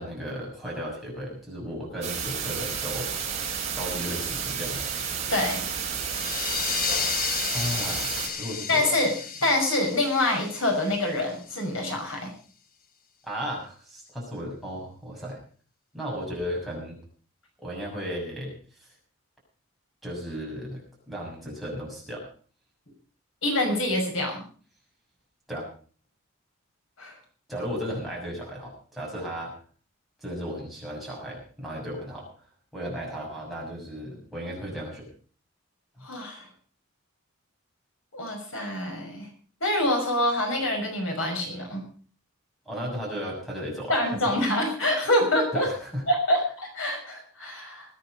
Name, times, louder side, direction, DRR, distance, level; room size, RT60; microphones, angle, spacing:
voice 1, 0.0-3.1 3.7-4.9 7.5-8.9 13.2-15.4 15.9-17.0 17.6-18.9 20.0-20.8 21.1-22.3 25.5-25.7 27.5-29.5 30.2-32.3 32.7-35.1 36.0-36.1 42.6-44.2 45.5-46.0, equal, ahead, -4 dB, 6.5 m, -35 dB
sound 1, 2.0-8.3, right 7 dB, 35° right, 4.3 m, -31 dB
voice 2, 5.3-5.6 8.7-9.1 9.4-12.3 23.4-24.4 27.0-27.1 36.0-36.5 38.1-39.3 39.6-41.8 43.9-45.7 46.1-48.0, left 1 dB, 80° left, 2 dB, 6.0 m, -26 dB
sound 2, 6.1-11.4, left 6 dB, 40° left, 1.2 m, -32 dB
21.0 x 9.7 x 5.2 m, 0.42 s
head